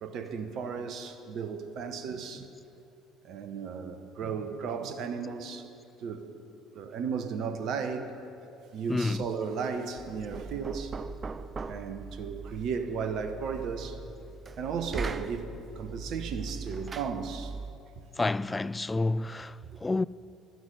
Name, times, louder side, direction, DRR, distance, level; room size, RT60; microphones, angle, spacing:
voice 1, 0.0-2.5 3.2-5.7 6.0-6.3 6.7-8.1 8.4-8.5 8.7-11.3 11.7-14.0 14.6-17.5, right 6 dB, 55° right, 1.1 m, -35 dB
voice 2, 8.9-9.2 18.2-20.0, left 3 dB, 20° left, 0.3 m, -29 dB
Knock, 10.0-17.9, right 4 dB, 30° right, 0.5 m, -40 dB
16.0 x 12.0 x 5.5 m
figure-of-eight pair, 55°, 0 cm